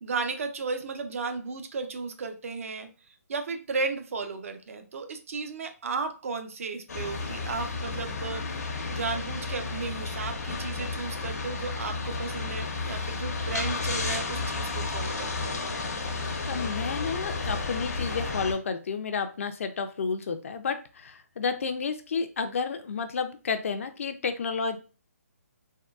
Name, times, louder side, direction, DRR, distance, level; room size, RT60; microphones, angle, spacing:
voice 1, 0.0-2.9 3.3-8.6 8.9-15.6, right 4 dB, 55° right, 7 dB, 0.5 m, -34 dB
sound 1, 6.9-18.5, left 3 dB, 80° left, 0.8 m, -32 dB
voice 2, 16.5-24.8, left 5 dB, 55° left, 9 dB, 0.4 m, -31 dB
3.6 x 2.2 x 2.3 m, 0.34 s
hypercardioid pair, 160°, 9 cm